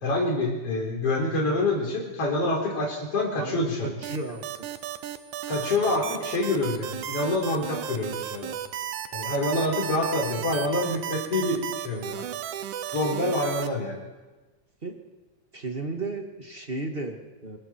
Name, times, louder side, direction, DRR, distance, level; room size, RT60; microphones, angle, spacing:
voice 1, 0.0-3.9 5.5-8.5 9.1-12.2 12.9-14.0, left 2 dB, 50° left, -1 dB, 5.3 m, -26 dB
voice 2, 3.3-4.7 10.0-10.6 14.8-14.9 15.5-17.6, right 2 dB, 25° right, 3 dB, 1.6 m, -35 dB
sound 1, 4.0-13.7, right 11 dB, 90° right, 2.4 m, -34 dB
28.0 x 20.5 x 4.5 m, 1.2 s
omnidirectional pair, 3.4 m